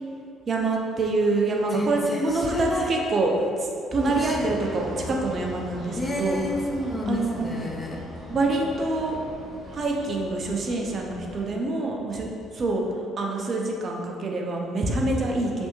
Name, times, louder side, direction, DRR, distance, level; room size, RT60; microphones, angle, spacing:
voice 1, 0.5-6.4 7.1-7.6 8.3-9.2 9.6-12.8 13.2-15.7, right 2 dB, 45° right, 0 dB, 0.4 m, -26 dB
voice 2, 1.7-2.9 4.1-4.5 6.0-8.0, left 2 dB, 25° left, -1 dB, 0.6 m, -30 dB
sound 1, 4.0-11.4, left 1 dB, 55° left, 1.4 m, -40 dB
3.3 x 2.5 x 2.9 m, 2.5 s
hypercardioid pair, 55°, 0 cm